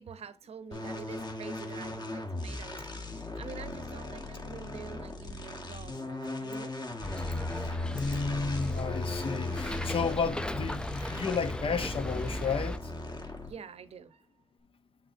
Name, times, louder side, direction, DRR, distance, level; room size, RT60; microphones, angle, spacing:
voice 1, 0.0-6.7 13.2-14.3, right 6 dB, 70° right, 0.8 m, -47 dB
sound 1, 0.7-13.7, left 2 dB, 40° left, 1.4 m, -38 dB
Bus, 7.0-12.8, left 1 dB, 10° left, 0.4 m, -37 dB
voice 2, 7.9-12.9, left 5 dB, 55° left, 0.8 m, -32 dB
7.4 x 5.8 x 2.7 m
cardioid pair, 80°, 11 cm